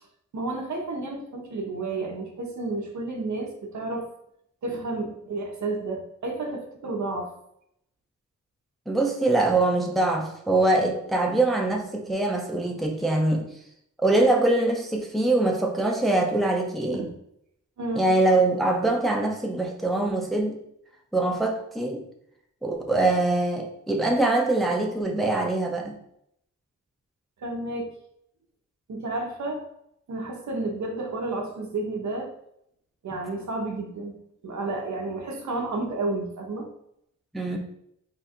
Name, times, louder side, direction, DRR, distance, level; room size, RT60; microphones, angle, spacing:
voice 1, 0.3-4.1 4.6-7.3 17.8-18.2 27.4-27.9 28.9-29.6 30.1-32.3 33.0-36.7, right 2 dB, 70° right, 2 dB, 0.9 m, -31 dB
voice 2, 8.9-13.5 14.0-17.1 18.0-20.6 21.1-22.0 22.6-26.0 37.3-37.6, right 2 dB, ahead, 1 dB, 0.5 m, -23 dB
3.7 x 2.4 x 4.3 m, 0.74 s
wide cardioid pair, 120°, 30 cm